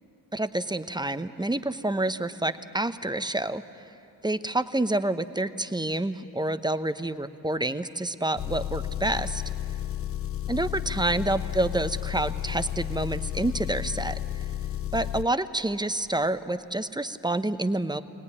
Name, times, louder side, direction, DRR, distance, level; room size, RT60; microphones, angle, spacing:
voice 1, 0.3-3.8 4.2-9.4 10.5-14.4 14.9-18.0, right 2 dB, 10° right, 11 dB, 0.9 m, -28 dB
Engine, 8.4-15.3, left 12 dB, 35° left, 0.5 m, -32 dB
23.5 x 17.5 x 9.8 m, 2.7 s
supercardioid pair, 60°, 41 cm